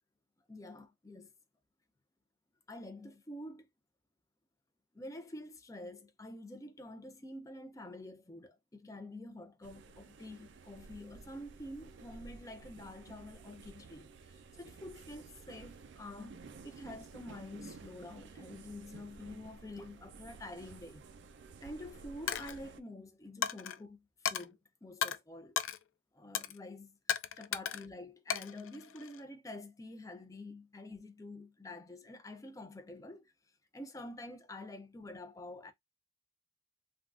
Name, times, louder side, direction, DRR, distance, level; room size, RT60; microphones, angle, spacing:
voice 1, 0.5-1.3 2.7-3.7 4.9-21.0 21.6-25.6 26.1-33.3 33.7-35.7, left 1 dB, 15° left, 0.4 m, -48 dB
sound 1, 9.6-22.8, right 4 dB, 65° right, 0.4 m, -53 dB
Coin (dropping), 22.3-22.6 23.4-23.8 24.3-24.5 25.0-25.2 25.6-25.8 26.3-26.6 27.1-27.9 28.3-29.2, left 9 dB, 80° left, 0.4 m, -35 dB
3.4 x 2.3 x 2.4 m
head